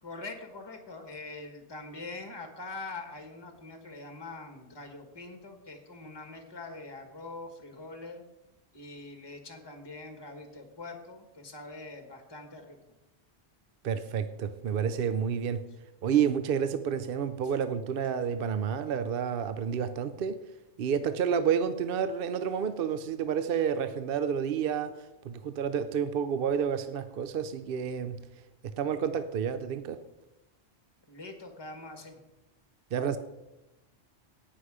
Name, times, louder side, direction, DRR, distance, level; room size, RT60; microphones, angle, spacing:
voice 1, 0.0-8.2 8.7-12.8 31.1-32.2, left 3 dB, 20° left, 5 dB, 1.5 m, -43 dB
voice 2, 13.8-15.6 16.0-20.4 20.8-28.2 28.6-30.0 32.9-33.2, right 7 dB, 60° right, 11 dB, 0.8 m, -30 dB
17.5 x 6.0 x 4.9 m, 0.96 s
omnidirectional pair, 1.1 m